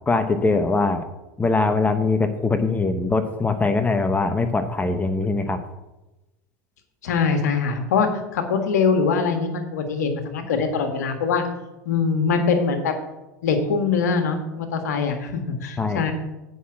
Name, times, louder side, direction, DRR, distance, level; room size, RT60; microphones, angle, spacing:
voice 1, 0.1-1.0 1.4-5.6 15.8-16.1, left 3 dB, 15° left, 8 dB, 0.9 m, -22 dB
voice 2, 7.0-11.4 11.8-12.9 13.4-16.1, left 5 dB, 80° left, 5 dB, 1.6 m, -23 dB
8.3 x 5.8 x 7.4 m, 1.0 s
hypercardioid pair, 85°, 9 cm